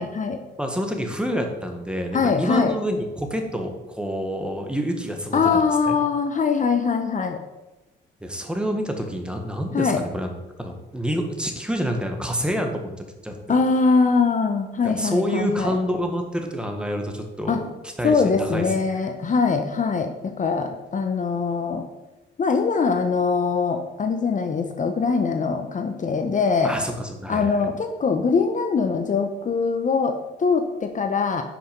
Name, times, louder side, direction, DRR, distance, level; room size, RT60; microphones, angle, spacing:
voice 1, 0.0-0.4 2.1-2.7 5.3-7.4 9.7-10.0 13.5-15.7 17.5-17.6 18.0-21.9 22.4-26.7 27.3-31.4, left 5 dB, 40° left, 6 dB, 1.0 m, -22 dB
voice 2, 0.6-6.0 8.2-13.6 14.8-18.7 26.6-27.7, equal, 5° right, 3 dB, 1.8 m, -28 dB
9.9 x 6.1 x 5.3 m, 1.0 s
cardioid pair, 90°, 20 cm